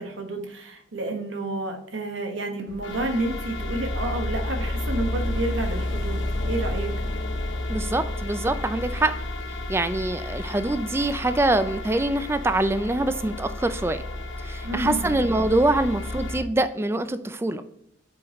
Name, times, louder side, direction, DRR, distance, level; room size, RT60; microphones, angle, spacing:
voice 1, 0.0-6.9 14.6-15.2, right 2 dB, 80° right, 4 dB, 1.2 m, -30 dB
sound 1, 2.7-16.4, left 2 dB, 75° left, 0.8 m, -31 dB
voice 2, 7.7-9.1 9.7-14.0 14.4-17.6, right 2 dB, 15° right, 11 dB, 0.3 m, -24 dB
7.1 x 4.9 x 3.1 m, 0.77 s
head